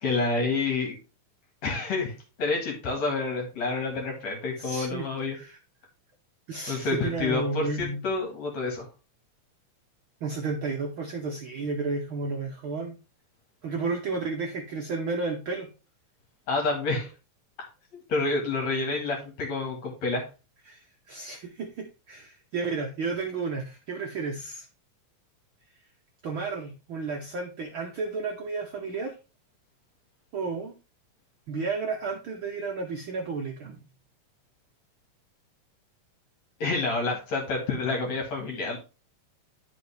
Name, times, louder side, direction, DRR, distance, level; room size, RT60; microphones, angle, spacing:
voice 1, 0.0-1.0 1.6-5.4 6.7-8.9 16.5-17.1 18.1-20.2 36.6-38.8, left 3 dB, 60° left, 1 dB, 3.0 m, -28 dB
voice 2, 4.6-5.1 5.3-5.6 6.5-8.0 10.2-13.0 13.6-15.7 20.7-24.7 26.2-29.1 30.3-30.7 31.5-33.8, right 4 dB, 70° right, 3 dB, 1.2 m, -32 dB
10.5 x 5.3 x 3.4 m, 0.31 s
omnidirectional pair, 3.6 m